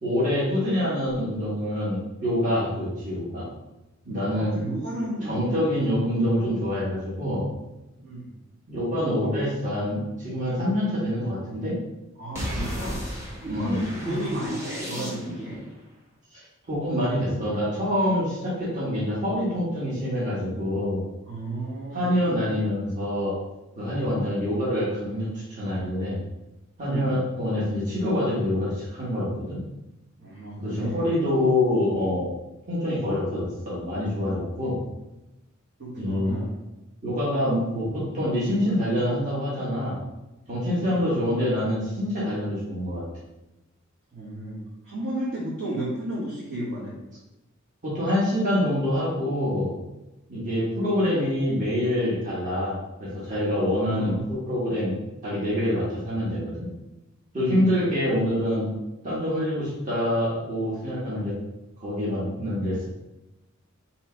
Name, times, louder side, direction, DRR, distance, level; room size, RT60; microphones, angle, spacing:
voice 1, 0.0-3.5 4.0-4.5 5.2-7.4 8.7-11.8 13.5-14.2 16.3-21.0 21.9-23.3 23.8-26.2 26.8-29.6 30.6-32.3 32.7-34.8 36.0-36.3 37.0-40.0 40.5-43.0 47.8-49.7 50.3-56.7 57.3-58.7 59.0-61.3 61.8-62.9, left 1 dB, 40° right, -8 dB, 1.2 m, -26 dB
voice 2, 4.3-5.6 8.0-8.2 12.2-13.0 13.4-15.6 21.3-22.1 26.8-27.2 30.2-31.0 35.8-36.5 40.6-41.0 44.1-44.6 44.8-46.9 53.6-54.3 57.4-57.7, right 1 dB, 60° right, -9 dB, 1.2 m, -32 dB
sound 1, 12.3-15.6, equal, 15° right, 0.8 m, -34 dB
3.1 x 2.9 x 4.4 m, 0.98 s
head